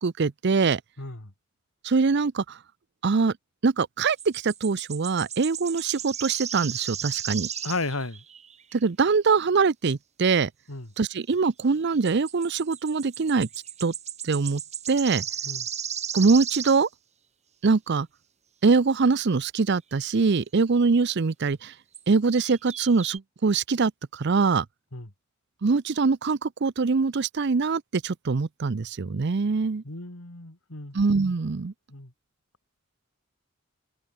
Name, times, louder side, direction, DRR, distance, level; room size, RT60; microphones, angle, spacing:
voice 1, 0.0-0.8 1.8-2.6 3.0-3.3 3.6-7.5 8.7-10.5 11.0-13.5 13.8-13.9 14.2-14.6 14.9-15.2 16.1-16.9 17.6-18.1 18.6-21.7 22.1-24.7 25.6-29.8 30.9-31.7, right 4 dB, 55° right, 0.5 m, -23 dB
voice 2, 1.0-1.3 7.6-8.2 10.7-10.9 15.4-15.7 24.9-25.1 29.8-31.0 31.9-32.1, left 2 dB, 80° left, 3.0 m, -34 dB
sound 1, 4.2-8.7 12.0-16.8 20.0-20.1 21.9-22.0 22.3-23.2, right 9 dB, 35° right, 4.5 m, -35 dB
open air
head